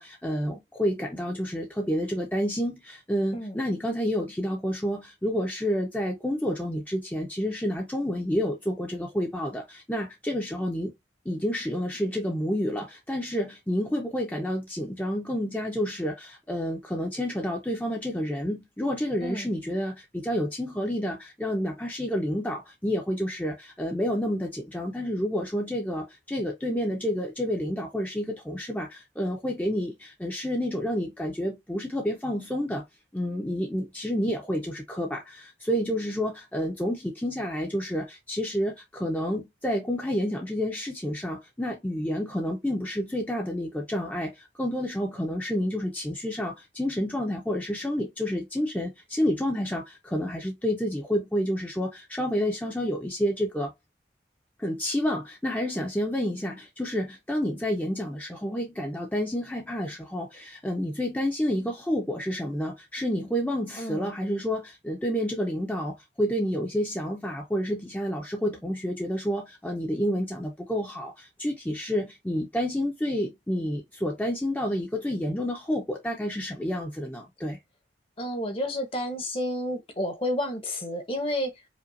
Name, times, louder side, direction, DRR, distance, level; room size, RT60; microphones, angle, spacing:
voice 1, 0.0-10.9 11.2-32.8 33.1-53.7 54.6-77.6, equal, 10° left, 0.7 m, -29 dB
voice 2, 63.8-64.1 78.2-81.5, left 1 dB, 30° left, 1.0 m, -30 dB
5.1 x 2.4 x 2.6 m
head